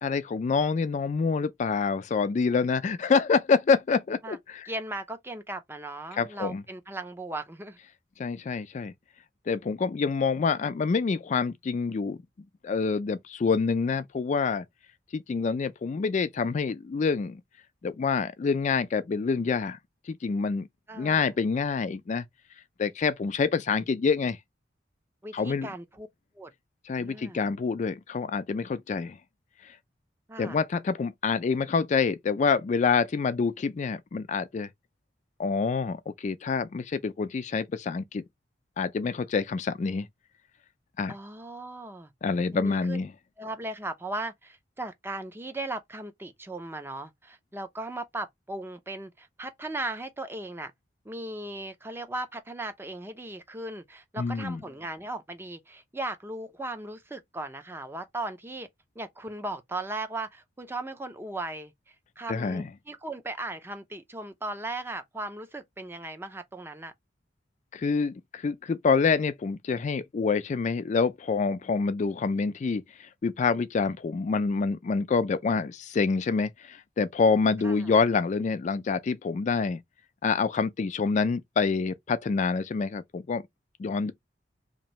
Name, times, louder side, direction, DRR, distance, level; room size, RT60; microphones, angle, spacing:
voice 1, 0.0-4.7 6.1-6.6 8.2-8.9 9.5-12.2 12.6-14.6 15.1-17.4 17.8-19.8 20.1-20.7 21.0-22.2 22.8-24.4 25.3-25.7 26.9-29.2 29.6-29.8 30.4-34.7 35.4-38.2 38.8-40.1 41.0-41.1 42.2-43.1 54.2-54.6 62.3-62.7 67.7-79.8 80.2-83.4 83.8-84.1, left 5 dB, 45° left, 0.3 m, -27 dB
voice 2, 4.7-7.8 20.9-21.3 25.2-26.1 26.3-26.5 27.0-27.5 30.3-30.6 41.1-42.1 42.5-43.0 43.4-50.7 51.0-58.7 59.0-66.9 77.6-77.9, right 2 dB, 15° right, 0.5 m, -37 dB
2.9 x 2.6 x 4.2 m
head